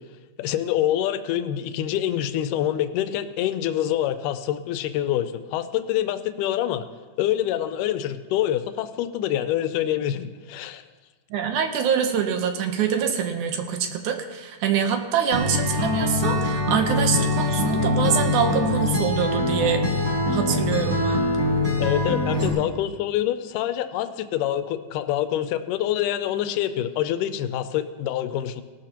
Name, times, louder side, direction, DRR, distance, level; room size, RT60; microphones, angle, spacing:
voice 1, 0.4-6.9 7.2-10.8 21.8-28.6, left 11 dB, 85° left, 11 dB, 2.2 m, -26 dB
voice 2, 11.3-19.8 20.3-21.2, right 7 dB, 75° right, 5 dB, 2.3 m, -25 dB
Acoustic guitar, 15.3-22.5, left 2 dB, 30° right, 2.2 m, -23 dB
18.5 x 12.5 x 2.9 m, 1.3 s
omnidirectional pair, 3.7 m